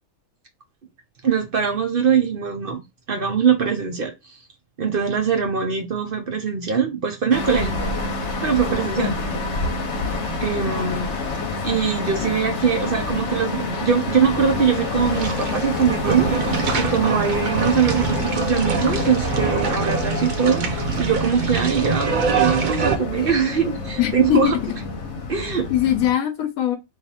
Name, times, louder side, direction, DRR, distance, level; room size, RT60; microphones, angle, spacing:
voice 1, 1.2-2.8 3.1-4.1 4.8-7.7 8.4-9.1 10.4-11.1 11.6-16.3 16.7-24.6 25.3-25.7, right 6 dB, 50° right, 0.8 m, -22 dB
sound 1, 7.3-26.1, left 3 dB, 60° left, 1.0 m, -27 dB
sound 2, 14.5-23.0, right 6 dB, 75° right, 0.4 m, -25 dB
voice 2, 24.0-24.5 25.7-26.8, left 11 dB, 90° left, 1.1 m, -21 dB
3.2 x 2.7 x 4.1 m
omnidirectional pair, 1.5 m